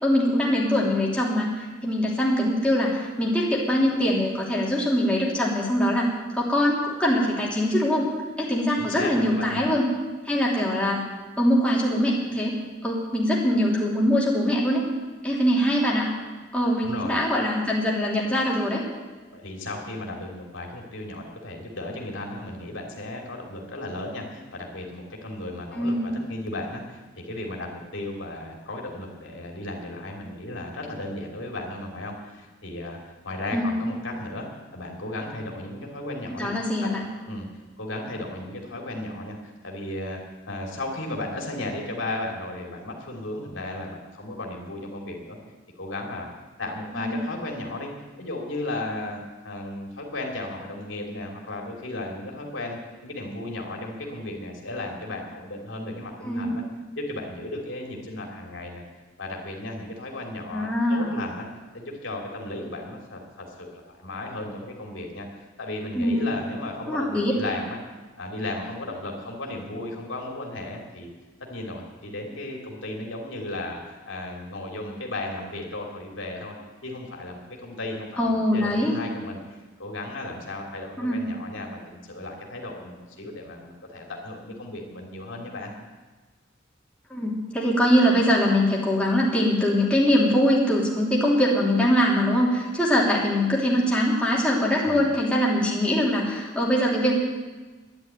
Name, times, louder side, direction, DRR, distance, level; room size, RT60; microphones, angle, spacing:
voice 1, 0.0-6.1 6.3-8.0 8.4-9.8 10.2-11.0 11.4-12.5 12.8-14.8 15.2-16.1 16.5-18.8 25.7-26.2 33.5-33.8 36.3-37.0 46.9-47.2 56.2-56.5 60.5-61.2 65.9-66.3 66.9-67.3 78.2-78.9 81.0-81.3 87.1-97.1, equal, 5° left, -5 dB, 3.2 m, -23 dB
voice 2, 8.8-9.7 16.8-17.2 19.3-34.5 34.7-36.5 36.8-36.9 37.3-37.5 37.8-40.2 40.5-45.4 45.8-46.3 46.6-47.9 48.2-56.6 57.0-58.8 59.2-61.5 61.7-63.7 64.0-67.8 68.2-71.1 71.5-76.5 76.8-85.7 94.8-95.0, left 2 dB, 75° left, 0 dB, 2.9 m, -35 dB
12.0 x 10.5 x 9.3 m, 1.3 s
head